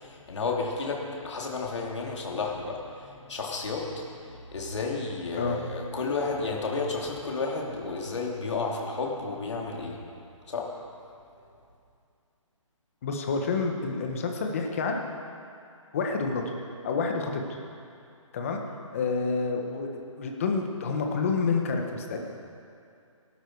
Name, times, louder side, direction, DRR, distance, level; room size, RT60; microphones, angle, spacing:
voice 1, 0.0-10.0 10.5-10.8, left 4 dB, 60° left, -1 dB, 3.2 m, -32 dB
voice 2, 13.0-15.0 15.9-16.4 16.8-17.4 18.3-18.6 18.9-19.9 20.2-22.2, left 4 dB, 25° left, 3 dB, 1.4 m, -28 dB
20.0 x 12.5 x 4.8 m, 2.5 s
hypercardioid pair, 170°, 17 cm